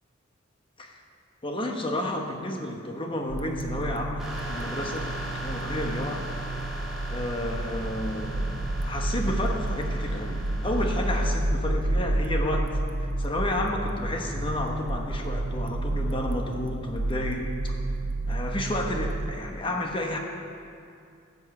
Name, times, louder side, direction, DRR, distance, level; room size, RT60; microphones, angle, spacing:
voice 1, 1.4-5.1 5.4-6.2 7.1-8.5 8.8-12.7 13.0-17.7 18.3-20.2, left 1 dB, 25° left, 1 dB, 1.0 m, -31 dB
sound 1, 3.3-19.3, right 1 dB, 80° right, 0.9 m, -30 dB
sound 2, 4.2-11.3, equal, ahead, 2.3 m, -39 dB
16.0 x 5.4 x 8.0 m, 2.4 s
head